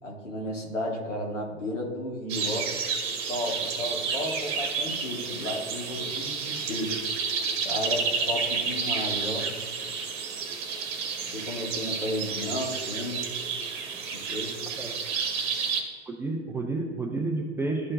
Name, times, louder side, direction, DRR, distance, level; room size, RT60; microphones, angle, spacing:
voice 1, 0.0-2.7 3.3-7.0 7.6-9.5 11.3-13.3 13.9-14.5, left 1 dB, 85° left, -2 dB, 1.9 m, -33 dB
sound 1, 2.3-15.8, right 5 dB, 35° right, 1.2 m, -31 dB
voice 2, 16.1-17.9, right 2 dB, 5° right, 0 dB, 0.4 m, -30 dB
12.5 x 4.4 x 2.5 m, 1.6 s
figure-of-eight pair, 105°, 36 cm